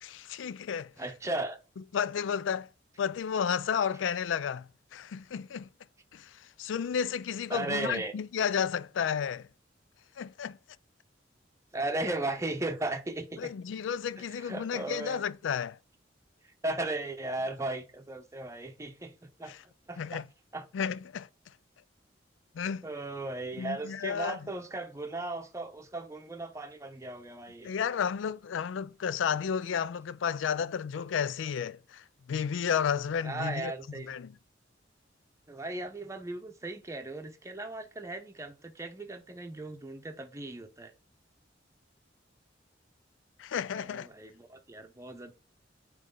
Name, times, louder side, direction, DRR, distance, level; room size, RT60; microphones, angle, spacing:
voice 1, 0.0-0.9 1.9-2.7 3.0-5.7 6.1-9.5 10.2-10.6 13.4-15.8 19.5-19.6 20.0-20.3 20.7-21.3 22.5-22.8 23.6-24.4 27.6-33.7 34.1-34.3 43.4-44.1, left 7 dB, 75° left, 0.4 m, -32 dB
voice 2, 1.0-1.6 7.5-8.1 11.7-13.5 14.2-15.2 16.4-19.5 19.9-20.2 20.5-20.7 22.8-27.7 33.2-34.1 35.5-40.9 43.7-45.3, right 2 dB, 15° right, 0.8 m, -36 dB
9.1 x 3.2 x 3.8 m
head